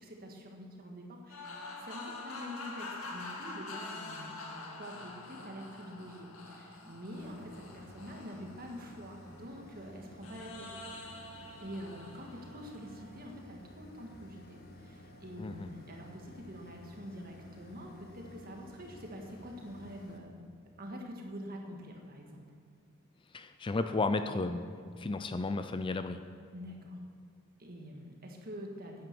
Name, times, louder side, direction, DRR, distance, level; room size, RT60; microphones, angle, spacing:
voice 1, 0.0-4.4 4.8-10.7 11.6-20.4 20.8-22.5 26.5-26.9 27.6-29.1, equal, 45° right, 2 dB, 1.8 m, -46 dB
sound 1, 1.3-9.6 10.2-13.3, left 2 dB, 70° left, 2.3 m, -46 dB
sound 2, 7.2-20.2, equal, 45° left, 1.4 m, -53 dB
voice 2, 23.3-24.7 25.0-26.2, left 3 dB, 25° left, 9 dB, 0.4 m, -33 dB
10.5 x 9.6 x 6.9 m, 2.3 s
head